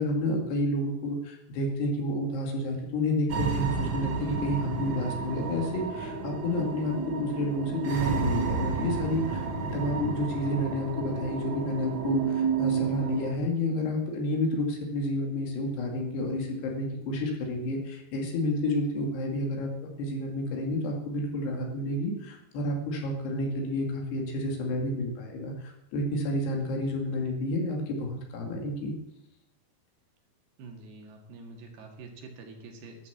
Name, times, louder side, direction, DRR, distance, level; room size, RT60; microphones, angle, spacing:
voice 1, 0.0-9.4 9.7-28.9, left 1 dB, 85° left, 1 dB, 4.4 m, -30 dB
sound 1, 3.3-13.3, right 4 dB, 60° right, 1.3 m, -31 dB
voice 2, 30.6-33.1, right 3 dB, 75° right, 2 dB, 4.0 m, -46 dB
12.0 x 9.3 x 7.2 m, 0.89 s
omnidirectional pair, 4.6 m